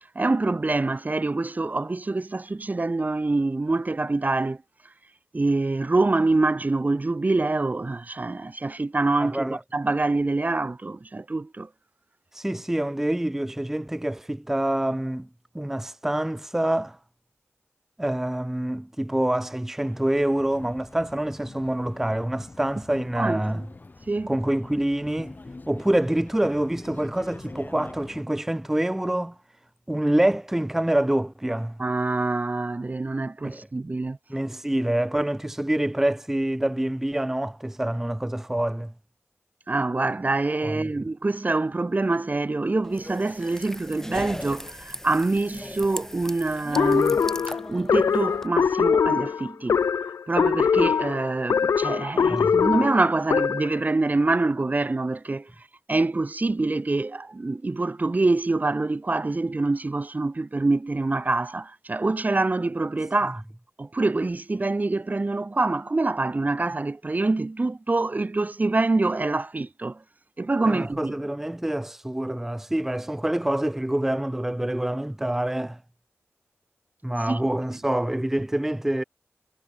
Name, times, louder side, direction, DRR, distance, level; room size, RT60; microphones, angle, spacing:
voice 1, 0.1-4.6 5.3-11.7 23.2-23.4 24.1-24.3 31.8-34.2 39.7-47.2 47.5-49.8 50.3-55.5 55.9-63.4 63.8-70.0 70.4-71.1 77.3-77.4, right 2 dB, 35° right, 1.2 m, -25 dB
voice 2, 9.2-9.6 12.3-15.3 15.5-17.0 18.0-23.6 24.3-25.4 25.7-29.4 29.9-31.8 33.4-33.7 34.3-38.9 40.6-40.9 52.3-52.6 70.7-75.8 77.0-79.0, right 1 dB, 10° right, 0.4 m, -26 dB
sound 1, 19.8-28.2, left 3 dB, 40° left, 6.1 m, -44 dB
sound 2, 42.8-48.5, left 1 dB, 10° left, 3.3 m, -38 dB
sound 3, 46.8-53.8, left 6 dB, 85° left, 0.3 m, -22 dB
wide cardioid pair, 75°, 5 cm